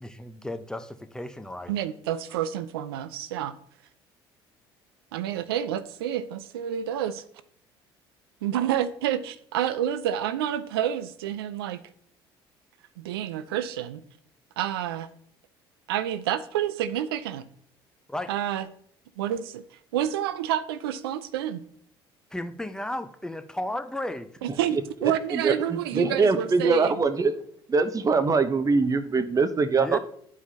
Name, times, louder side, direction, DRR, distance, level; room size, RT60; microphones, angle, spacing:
voice 1, 0.0-1.7 18.1-18.3 22.3-24.3 29.7-30.0, left 1 dB, 5° left, 0.8 m, -34 dB
voice 2, 1.7-3.6 5.1-7.2 8.4-11.8 13.0-14.0 14.6-15.1 15.9-17.5 18.3-18.7 19.2-19.6 19.9-21.6 24.4-27.0, right 10 dB, 85° right, 0.5 m, -29 dB
voice 3, 24.7-27.3 27.7-30.0, right 4 dB, 30° right, 0.8 m, -23 dB
11.0 x 4.8 x 2.8 m
hypercardioid pair, 65°, 12 cm